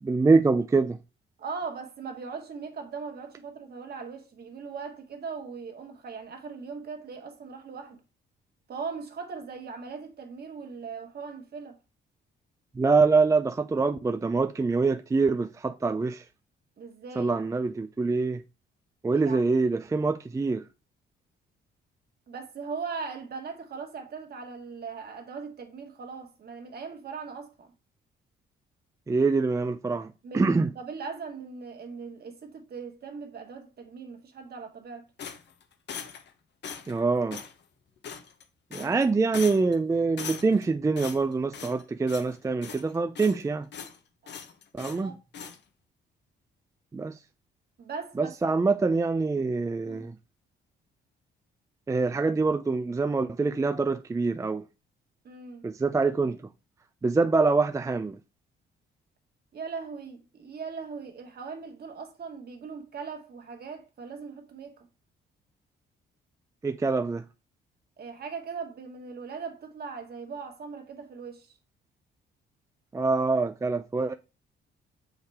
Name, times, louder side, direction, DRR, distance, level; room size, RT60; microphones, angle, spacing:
voice 1, 0.0-1.0 12.8-16.2 17.2-18.4 19.0-20.6 29.1-30.7 36.9-37.4 38.7-43.7 44.7-45.1 46.9-47.1 48.2-50.2 51.9-54.6 55.6-56.4 57.0-58.2 66.6-67.2 72.9-74.1, right 4 dB, 15° right, 0.4 m, -25 dB
voice 2, 1.4-8.0 8.7-11.8 16.8-17.3 19.2-19.4 22.3-27.7 30.2-35.0 38.8-39.0 44.2-44.3 44.9-45.2 47.8-48.4 49.9-50.1 55.2-55.6 59.5-64.9 68.0-71.6, right 5 dB, 55° right, 1.6 m, -39 dB
sound 1, 35.2-36.3 36.6-37.0 37.3-37.5 38.0-38.4 38.7-39.0 39.3-39.8 40.2-40.7 41.0-41.8 42.1-42.3 42.6-43.4 43.7-44.0 44.3-45.0 45.3-45.6, left 7 dB, 60° left, 1.0 m, -40 dB
6.4 x 4.9 x 3.5 m
cardioid pair, 90°, 20 cm